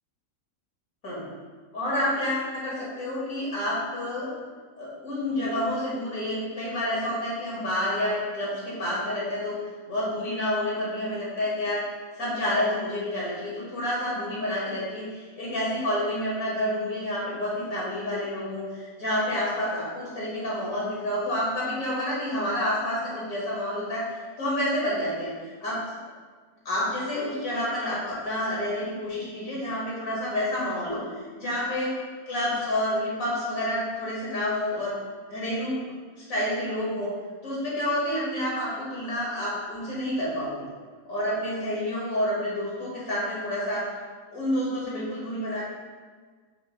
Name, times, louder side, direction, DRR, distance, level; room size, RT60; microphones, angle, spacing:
voice 1, 1.7-4.3 4.8-9.6 9.9-11.8 12.2-24.0 24.4-25.3 25.6-25.8 26.6-31.9 32.3-34.9 35.3-35.9 36.3-37.1 37.4-40.7 41.1-43.9 44.3-45.6, left 1 dB, 60° left, -7 dB, 2.5 m, -29 dB
7.8 x 6.6 x 2.2 m, 1.5 s
omnidirectional pair, 1.6 m